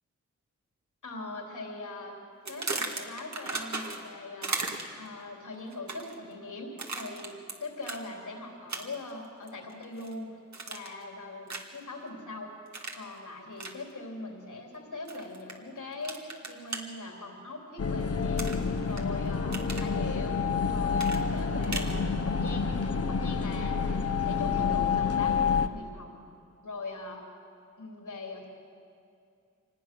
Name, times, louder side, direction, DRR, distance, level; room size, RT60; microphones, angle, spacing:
voice 1, 1.0-2.2 2.5-4.6 5.0-7.3 7.6-10.3 10.7-12.5 12.9-18.5 18.8-20.4 20.7-26.2 26.6-27.3 27.8-28.5, left 2 dB, 85° left, 0 dB, 3.6 m, -41 dB
sound 1, 2.5-4.1 4.4-5.1 5.7-6.2 6.8-7.5 7.8-8.0 8.7-9.1 9.5-10.1 10.5-11.0 11.5-11.8 12.7-13.0 13.6-13.8 15.1-15.5 16.0-16.8 18.4-19.0 19.3-19.9 21.0-22.0, right 3 dB, 65° right, 2.1 m, -36 dB
sound 2, 17.8-25.7, left 5 dB, 50° left, 0.9 m, -28 dB
25.0 x 19.5 x 6.2 m, 2.5 s
cardioid pair, 55°, 30 cm